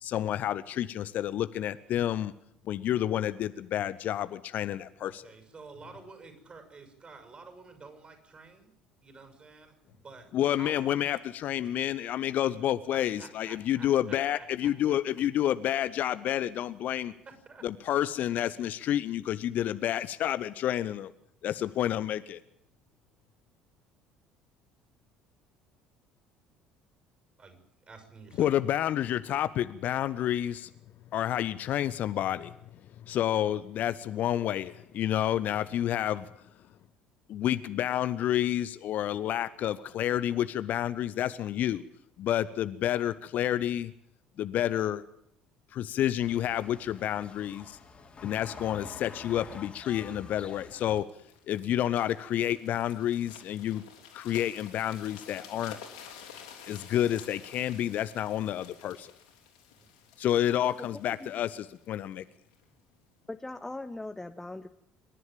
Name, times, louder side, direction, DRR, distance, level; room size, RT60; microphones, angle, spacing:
voice 1, 0.0-2.3 2.6-5.3 10.3-17.1 17.6-21.1 21.4-22.4 28.4-30.7 31.1-32.5 33.1-36.3 37.3-41.8 42.2-43.9 44.4-45.0 45.7-47.8 48.2-51.0 51.5-53.8 54.1-55.8 56.7-59.1 60.2-62.2, left 11 dB, 45° left, 14 dB, 0.7 m, -29 dB
voice 2, 5.0-8.7 9.0-11.2 11.6-11.7 13.2-14.7 17.3-17.7 27.4-27.6 27.9-28.5 59.7-59.9, right 4 dB, 30° right, 6 dB, 6.3 m, -50 dB
sound 1, 46.2-51.0, left 4 dB, 30° left, 2.9 m, -47 dB
sound 2, 50.8-62.6 63.2-63.4, left 8 dB, 70° left, 3.5 m, -51 dB
voice 3, 63.3-64.7, left 2 dB, 10° left, 9 dB, 0.9 m, -40 dB
26.0 x 11.0 x 9.0 m, 0.73 s
figure-of-eight pair, 55°, 4 cm